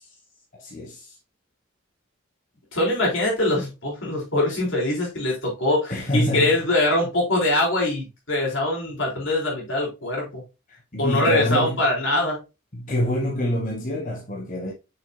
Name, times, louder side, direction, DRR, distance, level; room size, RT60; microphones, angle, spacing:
voice 1, 0.6-1.2 5.9-6.6 10.7-11.8 12.7-14.7, left 1 dB, 40° left, 1.5 m, -26 dB
voice 2, 2.7-10.4 11.0-12.4, left 1 dB, 70° left, 4.0 m, -23 dB
6.9 x 6.1 x 2.3 m
head